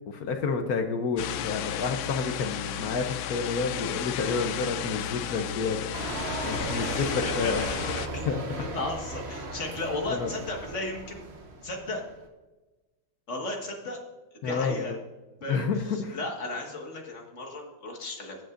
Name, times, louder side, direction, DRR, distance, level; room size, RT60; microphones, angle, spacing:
voice 1, 0.0-7.6 8.3-8.7 10.1-10.3 14.4-15.0 15.5-16.2, left 4 dB, 60° left, 5 dB, 1.0 m, -30 dB
sound 1, 1.2-8.1, left 11 dB, 75° left, 1.3 m, -33 dB
sound 2, 5.9-12.2, right 2 dB, 40° right, 1.1 m, -36 dB
voice 2, 7.2-8.3 8.5-11.2 11.6-12.0 13.3-14.0 14.3-15.0 15.4-18.4, left 2 dB, 35° left, 1 dB, 1.9 m, -35 dB
22.0 x 7.6 x 2.5 m, 1.2 s
omnidirectional pair, 2.3 m